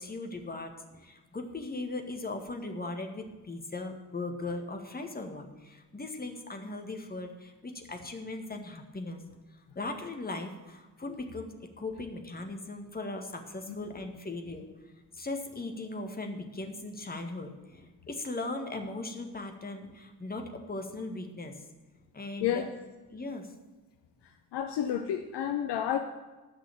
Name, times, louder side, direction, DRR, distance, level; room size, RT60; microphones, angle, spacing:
voice 1, 0.0-9.2 9.5-14.7 15.1-21.5 22.1-22.7 23.1-23.5, left 2 dB, 20° left, 4 dB, 1.8 m, -38 dB
voice 2, 24.5-26.0, left 10 dB, 55° left, 6 dB, 0.8 m, -30 dB
11.0 x 6.2 x 8.4 m, 1.2 s
figure-of-eight pair, 40°, 49 cm